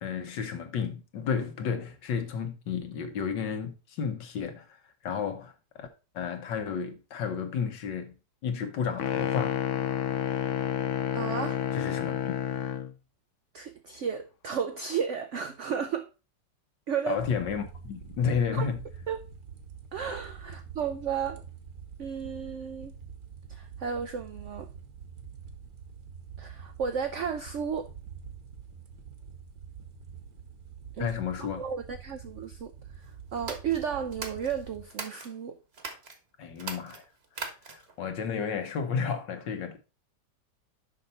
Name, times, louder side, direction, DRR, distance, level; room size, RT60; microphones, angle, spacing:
voice 1, 0.0-4.7 5.0-5.9 6.1-8.1 8.4-9.6 11.7-12.3 17.1-18.8 31.0-31.6 36.4-37.0 37.7-39.8, left 6 dB, 80° left, 1.7 m, -32 dB
sound 1, 9.0-12.9, left 10 dB, 65° left, 0.8 m, -30 dB
voice 2, 11.1-11.6 13.5-16.1 16.9-17.2 18.5-18.7 19.1-19.2 19.9-21.4 22.0-22.9 23.5-24.7 26.4-27.9 31.0-31.1 31.6-32.7 33.3-35.6, right 7 dB, 75° right, 0.6 m, -33 dB
sound 2, 17.1-34.8, right 6 dB, 60° right, 1.5 m, -46 dB
sound 3, 33.3-35.3 35.7-36.2 36.5-38.0, right 4 dB, 40° right, 1.2 m, -40 dB
6.5 x 5.5 x 4.1 m
omnidirectional pair, 1.9 m